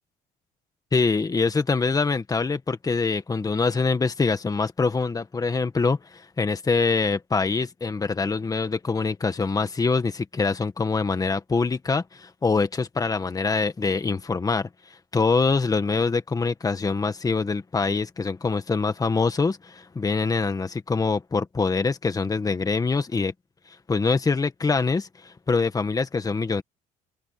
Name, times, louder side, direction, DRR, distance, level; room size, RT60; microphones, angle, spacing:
voice 1, 0.9-14.7 15.1-23.3 23.7-26.6, left 4 dB, 20° left, 1.6 m, -24 dB
open air
cardioid pair, 110°, 17 cm